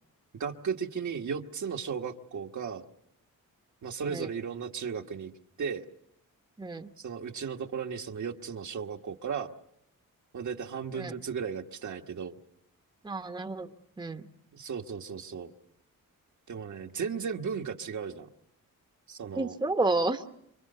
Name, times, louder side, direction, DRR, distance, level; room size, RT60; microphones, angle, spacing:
voice 1, 0.4-2.8 3.8-5.3 5.6-5.9 7.0-9.5 10.3-12.4 14.5-15.5 16.5-18.3 19.1-19.6, right 6 dB, 60° right, 4 dB, 1.4 m, -35 dB
voice 2, 6.6-6.9 10.9-11.1 13.0-13.7 14.0-14.3 19.3-20.2, right 2 dB, 15° right, 7 dB, 1.0 m, -30 dB
27.0 x 24.0 x 6.7 m, 0.78 s
cardioid pair, 105°, 33 cm